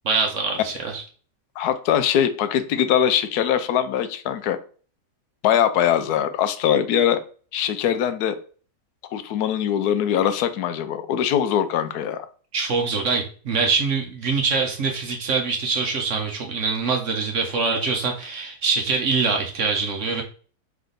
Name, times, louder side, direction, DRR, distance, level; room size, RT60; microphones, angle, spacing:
voice 1, 0.0-1.0 12.5-20.2, right 4 dB, 55° right, 3 dB, 1.0 m, -24 dB
voice 2, 1.6-4.6 5.4-7.2 7.5-8.4 9.1-12.3, left 9 dB, 75° left, 10 dB, 1.1 m, -22 dB
3.6 x 3.4 x 3.8 m, 0.41 s
omnidirectional pair, 1.7 m